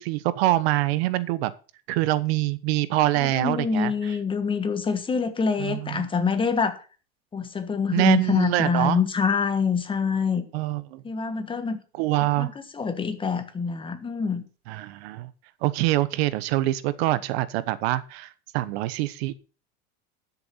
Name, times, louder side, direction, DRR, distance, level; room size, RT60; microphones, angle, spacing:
voice 1, 0.0-1.5 1.9-4.1 5.6-6.0 7.9-9.0 10.5-11.0 12.0-12.5 14.7-15.3 15.6-19.3, right 16 dB, 70° right, 1.1 m, -25 dB
voice 2, 3.2-6.7 7.3-10.5 11.0-11.8 12.4-14.4, left 5 dB, 15° left, 1.3 m, -25 dB
12.5 x 7.0 x 5.6 m
supercardioid pair, 145°, 32 cm